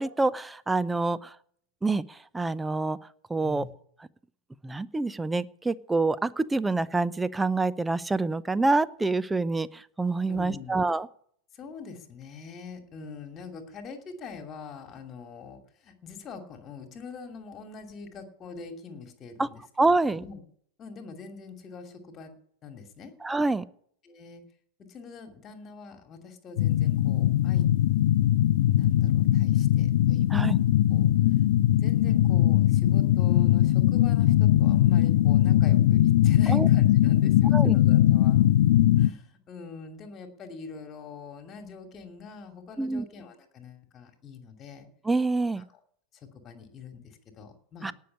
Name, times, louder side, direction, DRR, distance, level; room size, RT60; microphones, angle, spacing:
voice 1, 0.0-1.4 1.8-3.0 3.3-3.7 4.6-11.1 19.4-19.5 19.8-20.2 23.2-23.7 30.3-30.6 36.5-36.7 37.5-37.8 42.8-43.0 45.0-45.7 47.8-47.9, right 3 dB, 10° right, 17 dB, 0.6 m, -26 dB
voice 2, 10.3-10.8 11.5-19.6 20.1-20.4 20.8-22.3 22.6-23.1 24.0-24.4 24.9-27.7 28.7-30.5 30.9-31.1 31.8-38.4 39.0-44.9 46.1-47.9, left 4 dB, 30° left, 6 dB, 2.6 m, -44 dB
sound 1, 26.6-39.1, left 13 dB, 55° left, 0.5 m, -21 dB
18.0 x 6.5 x 9.6 m, 0.64 s
figure-of-eight pair, 90°, 0 cm